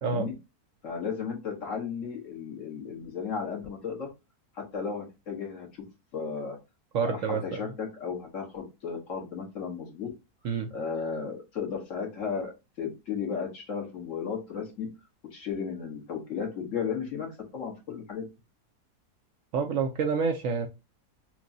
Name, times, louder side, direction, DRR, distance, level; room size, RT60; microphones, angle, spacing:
voice 1, 0.0-0.3 0.8-4.1 4.5-5.7 6.1-6.6 7.0-10.1 10.7-12.5 12.8-14.9 15.3-18.2, left 6 dB, 55° left, 0 dB, 1.5 m, -34 dB
voice 2, 6.9-7.6 10.4-10.7 19.5-20.7, right 5 dB, 65° right, 4 dB, 0.9 m, -28 dB
6.0 x 2.2 x 2.6 m, 0.25 s
omnidirectional pair, 1.7 m